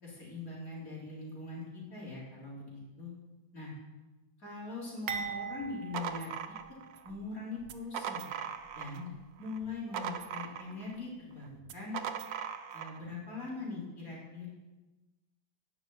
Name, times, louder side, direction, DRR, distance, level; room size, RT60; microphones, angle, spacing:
voice 1, 0.0-3.1 3.5-3.7 4.4-6.3 7.0-8.2 8.7-9.1 9.4-12.0 12.7-14.5, left 3 dB, 45° left, -6 dB, 4.2 m, -42 dB
sound 1, 5.1-7.2 7.6-7.8 8.6-8.8, right 6 dB, 55° right, 1.3 m, -41 dB
sound 2, 5.6-7.1 7.6-9.1 9.4-11.0 11.6-13.0, right 8 dB, 75° right, 1.4 m, -39 dB
11.5 x 6.4 x 8.7 m, 1.1 s
omnidirectional pair, 2.1 m